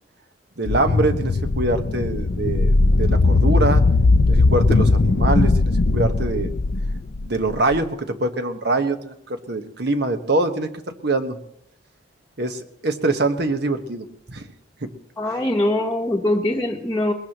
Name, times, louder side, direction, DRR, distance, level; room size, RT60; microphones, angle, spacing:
voice 1, 0.6-2.7 3.0-3.8 4.3-6.5 7.2-10.7 11.0-11.4 12.4-14.5 14.8-14.9, right 2 dB, 65° right, 7 dB, 1.3 m, -24 dB
sound 1, 0.7-7.8, left 3 dB, 60° left, 0.6 m, -18 dB
voice 2, 15.2-17.1, left 1 dB, 10° left, -4 dB, 1.1 m, -22 dB
21.5 x 21.0 x 3.0 m, 0.78 s
head